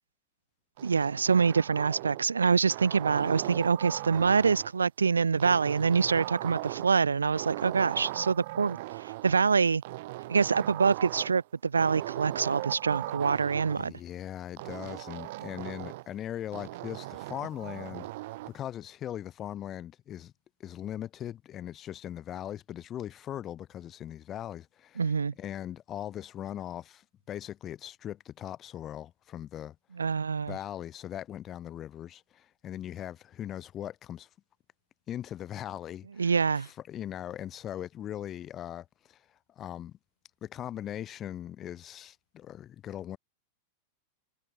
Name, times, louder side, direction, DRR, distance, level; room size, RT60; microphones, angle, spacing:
sound 1, 0.8-2.3 2.7-4.8 5.4-7.0 7.3-9.3 9.8-11.4 11.8-13.8 14.6-16.1 16.5-18.6, right 19 dB, 50° right, 3.4 m, -38 dB
voice 1, 0.8-9.8 10.3-13.9 25.0-25.3 30.0-30.6 36.2-36.7, right 5 dB, 75° right, 4.2 m, -25 dB
voice 2, 13.6-18.1 18.5-20.3 20.6-29.7 30.5-34.3 35.1-39.2 39.6-40.0 40.4-43.2, left 11 dB, 30° left, 4.9 m, -40 dB
figure-of-eight pair, 90°, 0 cm